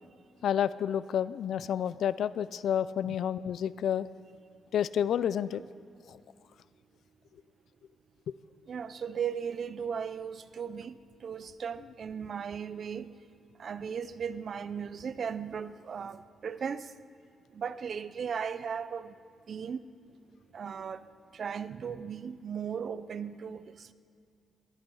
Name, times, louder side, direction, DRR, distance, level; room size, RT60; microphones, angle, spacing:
voice 1, 0.4-4.1 4.7-5.6 6.1-6.2 8.3-8.4, left 9 dB, 75° left, 0.4 m, -30 dB
voice 2, 8.7-10.9 11.2-13.1 13.6-16.8 17.6-19.1 19.5-19.8 20.5-21.0 21.3-23.7, right 7 dB, 55° right, 0.5 m, -36 dB
19.0 x 12.0 x 5.5 m
cardioid pair, 95°, 0 cm